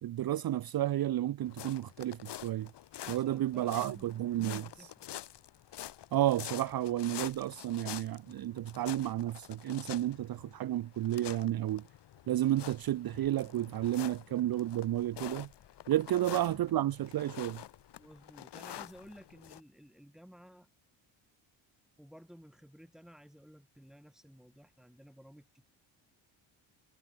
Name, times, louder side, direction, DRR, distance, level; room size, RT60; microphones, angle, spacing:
voice 1, 0.0-2.7 3.1-4.9 6.1-11.8 12.3-15.5 15.9-17.6, right 13 dB, 50° right, 0.6 m, -32 dB
sound 1, 1.5-19.6, left 12 dB, 60° left, 1.1 m, -47 dB
voice 2, 3.0-4.2 4.5-5.1 15.9-16.4 18.0-20.7 22.0-25.6, equal, ahead, 6.2 m, -55 dB
cardioid pair, 90°, 46 cm